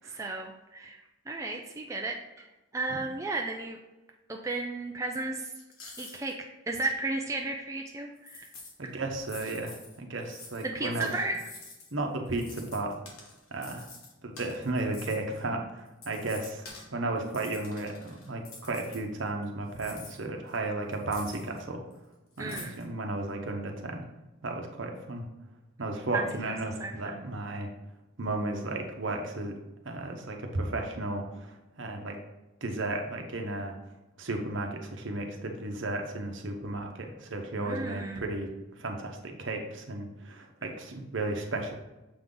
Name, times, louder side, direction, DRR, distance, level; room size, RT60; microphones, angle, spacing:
voice 1, 0.0-1.0 1.3-2.5 2.7-3.8 4.3-5.5 6.0-8.5 8.8-8.9 10.6-11.4 22.4-22.7 26.1-26.5 26.8-27.3 37.5-38.2, right 2 dB, 15° right, 1 dB, 0.3 m, -34 dB
sound 1, 5.6-6.3 6.7-6.8 8.2-8.7 9.2-10.7 11.0-11.9 12.3-15.4 15.9-16.9 17.2-19.4 19.7-21.6 21.9-22.0 22.4-22.8, left 3 dB, 85° left, 1.5 m, -48 dB
voice 2, 8.9-11.1 11.9-13.0 13.5-13.9 14.2-16.6 16.9-21.8 22.4-24.0 24.4-25.2 25.8-27.7 28.2-29.5 29.8-31.2 31.8-32.2 32.6-33.7 34.2-38.5 38.8-41.7, right 2 dB, 60° right, 3 dB, 0.8 m, -34 dB
6.9 x 3.7 x 3.9 m, 1.0 s
head